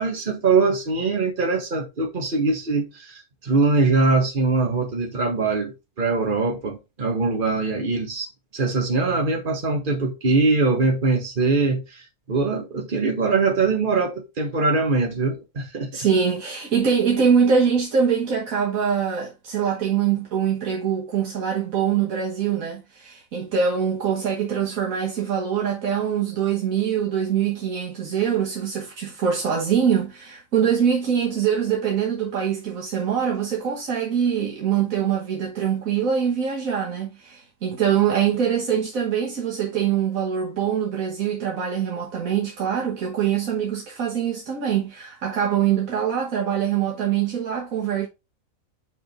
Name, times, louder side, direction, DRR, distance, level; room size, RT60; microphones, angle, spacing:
voice 1, 0.0-15.9, right 3 dB, 40° right, 1.7 m, -22 dB
voice 2, 15.9-48.1, right 7 dB, 85° right, 1.7 m, -23 dB
6.1 x 5.0 x 4.4 m
omnidirectional pair, 1.4 m